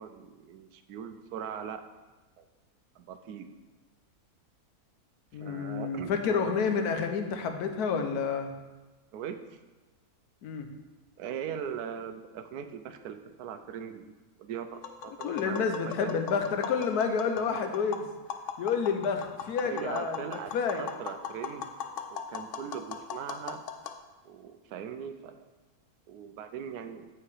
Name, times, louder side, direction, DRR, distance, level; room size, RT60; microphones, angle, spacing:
voice 1, 0.0-1.8 2.4-2.5 3.0-3.5 5.4-6.7 9.1-9.6 11.2-14.1 14.4-16.2 19.6-21.7 22.1-24.0 24.2-25.4 26.1-27.1, right 8 dB, 85° right, 9 dB, 1.1 m, -40 dB
voice 2, 5.3-8.5 10.4-10.7 15.2-18.1 18.6-20.9, left 6 dB, 85° left, 6 dB, 1.3 m, -29 dB
Tap, 14.7-24.0, left 7 dB, 65° left, 0.8 m, -40 dB
8.9 x 4.8 x 4.8 m, 1.2 s
omnidirectional pair, 1.6 m